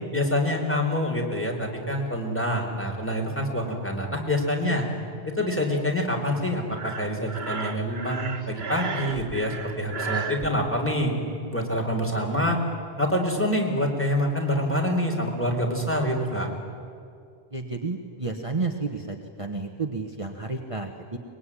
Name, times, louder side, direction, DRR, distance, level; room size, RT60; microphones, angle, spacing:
voice 1, 0.1-4.8 5.4-11.1 11.5-12.6 13.0-16.5, left 1 dB, 10° left, 1 dB, 3.9 m, -26 dB
Breathing, 6.7-10.5, right 5 dB, 75° right, 1.6 m, -34 dB
voice 2, 17.5-21.2, right 3 dB, 30° right, 3 dB, 1.4 m, -31 dB
23.5 x 21.5 x 10.0 m, 2.4 s
omnidirectional pair, 1.1 m